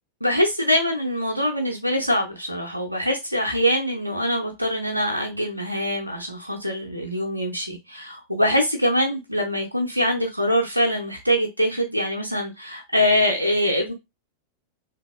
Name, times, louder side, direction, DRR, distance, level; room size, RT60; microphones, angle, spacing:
voice 1, 0.2-13.9, equal, 90° right, 0.6 m, -23 dB
3.3 x 2.8 x 2.3 m
figure-of-eight pair, 90°, 0 cm